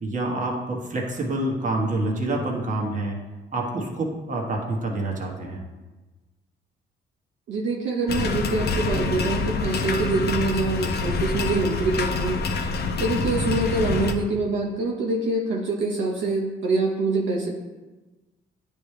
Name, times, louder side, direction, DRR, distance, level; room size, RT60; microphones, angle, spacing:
voice 1, 0.0-3.2 3.5-5.6, right 2 dB, 40° right, -1 dB, 1.4 m, -27 dB
voice 2, 7.5-12.4 13.0-17.5, right 3 dB, 75° right, -1 dB, 0.9 m, -25 dB
sound 1, 8.1-14.1, left 4 dB, 55° left, 0.7 m, -26 dB
9.7 x 3.3 x 3.2 m, 1.2 s
cardioid pair, 90°, 20 cm